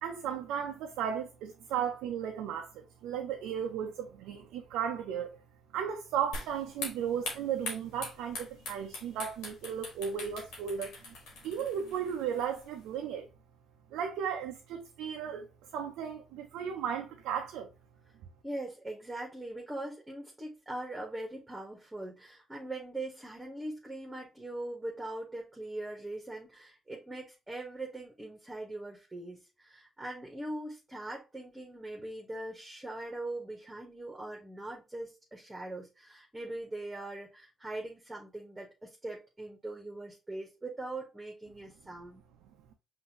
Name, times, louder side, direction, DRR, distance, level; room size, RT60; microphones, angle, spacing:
voice 1, 0.0-5.4 5.7-11.1 11.4-13.3 13.9-15.5 15.7-17.7, right 8 dB, 85° right, 0.5 m, -35 dB
sound 1, 6.3-12.9, left 2 dB, 85° left, 1.2 m, -43 dB
voice 2, 18.4-42.2, right 1 dB, 15° right, 1.4 m, -41 dB
5.4 x 2.6 x 2.9 m
supercardioid pair, 55°, 0 cm